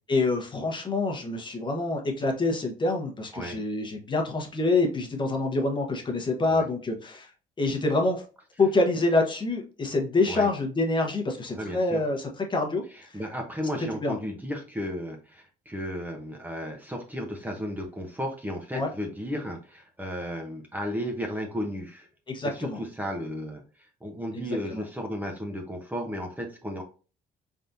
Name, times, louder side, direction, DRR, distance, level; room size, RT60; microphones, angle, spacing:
voice 1, 0.1-7.3 7.6-8.2 8.6-13.2 14.0-14.2 18.7-18.9 22.3-22.8 24.3-24.8, left 2 dB, 30° left, 3 dB, 1.0 m, -26 dB
voice 2, 11.5-12.0 12.9-22.1 22.4-23.6 24.0-26.8, equal, 10° right, 2 dB, 0.8 m, -34 dB
4.1 x 3.6 x 2.6 m, 0.36 s
cardioid pair, 110°, 17 cm